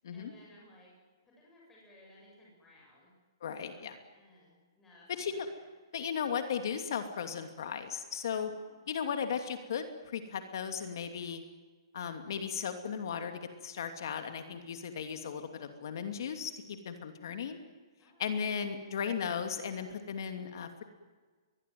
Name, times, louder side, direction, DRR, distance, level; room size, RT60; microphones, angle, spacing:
voice 1, 0.1-0.9 1.2-3.1 3.6-3.9 4.1-5.6 8.4-8.9 18.0-18.6, left 1 dB, 10° left, -4 dB, 8.0 m, -60 dB
voice 2, 3.4-4.0 5.1-5.5 5.9-8.5 8.9-11.4 11.9-17.6 18.2-20.8, left 7 dB, 60° left, 7 dB, 2.7 m, -36 dB
22.5 x 22.0 x 9.5 m, 1.4 s
hypercardioid pair, 165°, 2 cm